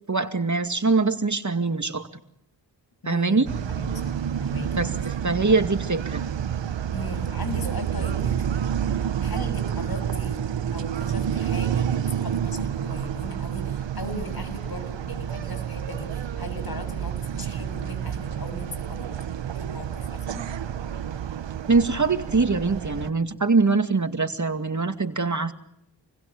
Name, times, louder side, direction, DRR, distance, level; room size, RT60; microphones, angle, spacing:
voice 1, 0.1-2.1 3.1-3.5 4.8-4.9 5.2-6.2 21.7-25.5, right 3 dB, 40° right, 7 dB, 2.3 m, -23 dB
voice 2, 3.0-4.7 5.5-5.6 6.9-8.6 9.2-10.4 10.7-19.1 19.5-20.5, left 2 dB, 55° left, 9 dB, 7.9 m, -38 dB
sound 1, 3.5-23.1, right 9 dB, 85° right, 1.1 m, -29 dB
29.0 x 21.5 x 8.7 m, 0.73 s
cardioid pair, 45°, 43 cm